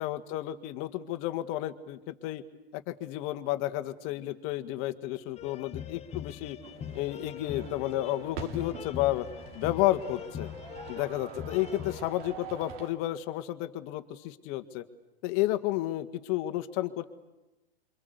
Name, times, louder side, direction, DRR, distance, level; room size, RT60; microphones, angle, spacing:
voice 1, 0.0-2.4 2.7-6.6 7.0-9.3 9.5-10.5 10.9-14.8 15.2-17.0, left 15 dB, 45° left, 10 dB, 1.7 m, -31 dB
sound 1, 5.4-12.0, left 9 dB, 20° left, 1.2 m, -42 dB
sound 2, 6.6-12.9, right 6 dB, 50° right, 3.1 m, -45 dB
28.0 x 24.5 x 8.2 m, 1.0 s
hypercardioid pair, 110°, 31 cm